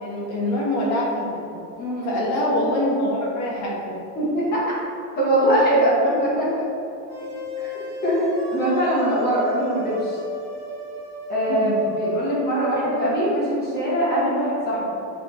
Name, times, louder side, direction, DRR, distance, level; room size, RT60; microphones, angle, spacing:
voice 1, 0.0-1.5 2.0-4.0 7.2-7.3 11.5-11.7, left 1 dB, 40° left, -3 dB, 1.4 m, -24 dB
voice 2, 1.8-2.1 4.2-4.7 5.2-6.7 7.6-7.7 8.0-8.3 8.5-10.2 11.3-14.8, right 1 dB, 20° left, -7 dB, 1.4 m, -22 dB
sound 1, 7.1-13.2, left 3 dB, 5° right, 1.1 m, -35 dB
7.1 x 3.6 x 4.3 m, 2.8 s
cardioid pair, 170°, 43 cm